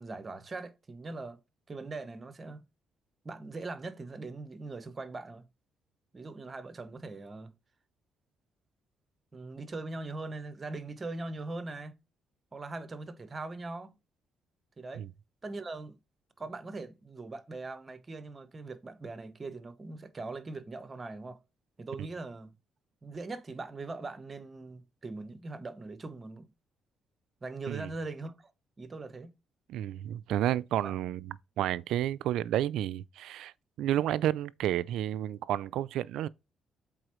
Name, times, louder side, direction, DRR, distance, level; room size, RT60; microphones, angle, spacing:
voice 1, 0.0-1.4 1.7-2.6 3.2-5.4 6.1-7.5 9.3-12.0 12.5-14.0 14.8-15.1 15.4-16.0 16.4-21.4 21.8-22.5 23.0-26.5 27.4-28.5 28.8-29.3 30.8-30.9, right 3 dB, 30° right, 0.9 m, -41 dB
voice 2, 29.7-36.3, right 12 dB, 85° right, 0.3 m, -31 dB
7.9 x 4.2 x 3.1 m
cardioid pair, 90°, 0 cm